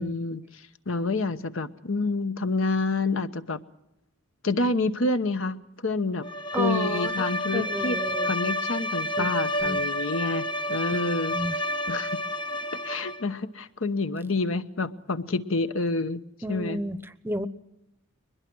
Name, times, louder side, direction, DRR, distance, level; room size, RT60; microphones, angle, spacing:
voice 1, 0.0-3.6 4.4-5.6 5.8-6.3 6.6-8.0 8.2-11.3 11.9-12.1 12.7-16.2 16.5-16.8, left 3 dB, 70° left, 11 dB, 1.1 m, -28 dB
Bowed string instrument, 6.2-13.3, left 1 dB, 20° left, 1.0 m, -29 dB
voice 2, 6.5-7.3 7.5-8.3 9.2-9.8 11.3-11.5 16.4-17.5, right 1 dB, 10° right, 14 dB, 0.8 m, -32 dB
22.5 x 21.0 x 6.2 m, 0.87 s
head